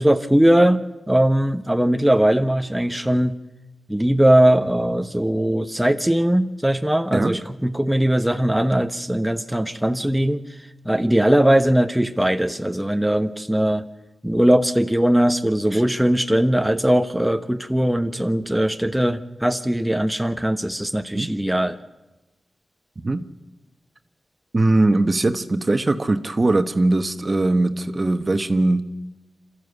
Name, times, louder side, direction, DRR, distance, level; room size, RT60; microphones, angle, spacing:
voice 1, 0.0-3.4 3.9-10.5 10.8-13.8 14.2-21.8, right 1 dB, 5° right, 7 dB, 1.0 m, -20 dB
voice 2, 23.0-23.3 24.5-28.8, right 2 dB, 40° right, 9 dB, 1.2 m, -20 dB
26.5 x 13.5 x 8.2 m, 1.1 s
cardioid pair, 60°, 0 cm